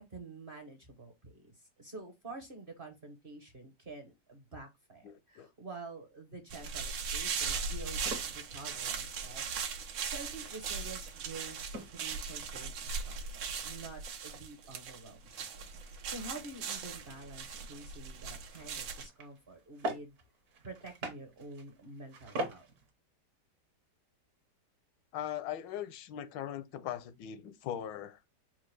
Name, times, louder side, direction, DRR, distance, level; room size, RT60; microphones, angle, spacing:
voice 1, 0.0-9.7 10.0-20.2 20.6-22.7, right 3 dB, 40° right, 0.8 m, -48 dB
voice 2, 5.0-5.5 25.1-28.2, left 10 dB, 85° left, 1.3 m, -40 dB
sound 1, 6.5-19.1, right 5 dB, 80° right, 1.5 m, -39 dB
sound 2, 7.9-22.9, right 1 dB, 60° right, 1.5 m, -47 dB
4.5 x 2.2 x 4.5 m
omnidirectional pair, 1.9 m